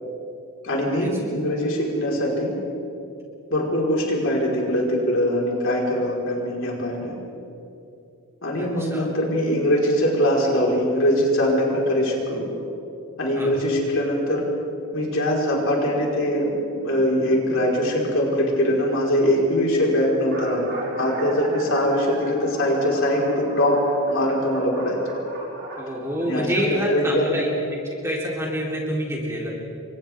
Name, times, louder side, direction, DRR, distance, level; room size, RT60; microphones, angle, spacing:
voice 1, 0.6-2.5 3.5-7.1 8.4-12.4 13.2-14.4 14.9-16.5 16.8-20.6 21.0-23.8 24.1-25.0 26.2-27.4, equal, 60° left, -3 dB, 4.7 m, -22 dB
voice 2, 8.6-9.1 13.4-13.5 25.8-27.5 28.0-29.6, equal, 10° right, -4 dB, 3.6 m, -27 dB
sound 1, 18.5-18.6 19.3-19.4 19.6-19.7 20.1-26.4, right 1 dB, 55° right, 5.7 m, -38 dB
30.0 x 24.0 x 3.7 m, 2.7 s
head